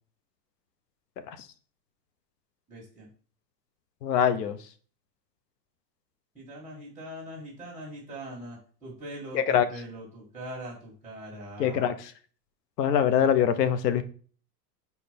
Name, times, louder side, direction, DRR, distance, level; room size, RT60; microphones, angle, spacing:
voice 1, 2.7-3.1 6.3-11.9, right 1 dB, 5° right, 2.1 m, -42 dB
voice 2, 4.0-4.6 9.3-9.7 11.6-12.1 12.8-14.0, left 9 dB, 85° left, 1.1 m, -23 dB
5.0 x 4.8 x 5.2 m
supercardioid pair, 160°, 48 cm